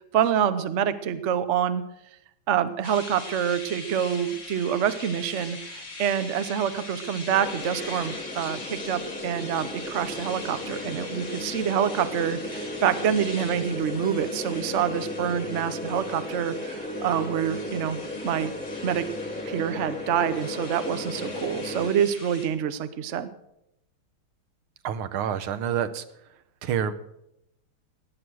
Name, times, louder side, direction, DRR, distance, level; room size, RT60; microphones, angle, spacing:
voice 1, 0.1-1.8 2.5-18.5 18.8-19.1 19.5-23.3, right 9 dB, 55° right, 12 dB, 0.8 m, -26 dB
sound 1, 2.8-22.5, left 3 dB, 60° left, 3.8 m, -42 dB
sound 2, 7.3-21.9, left 2 dB, 10° left, 0.5 m, -35 dB
voice 2, 24.8-26.0 26.6-26.9, right 8 dB, 85° right, 12 dB, 1.8 m, -27 dB
17.5 x 10.0 x 6.3 m, 0.82 s
omnidirectional pair, 2.3 m